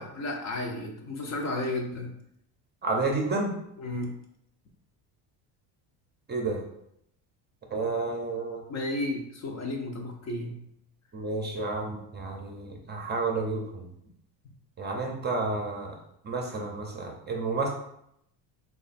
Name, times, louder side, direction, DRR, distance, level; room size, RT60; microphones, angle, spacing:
voice 1, 0.0-2.1 3.8-4.1 8.7-10.6, left 2 dB, 40° left, 1 dB, 0.7 m, -33 dB
voice 2, 2.8-3.5 6.3-6.6 7.7-8.6 11.1-13.8 14.8-15.9 16.2-17.7, right 3 dB, 25° right, 0 dB, 0.6 m, -30 dB
3.1 x 2.4 x 4.0 m, 0.75 s
cardioid pair, 110°, 44 cm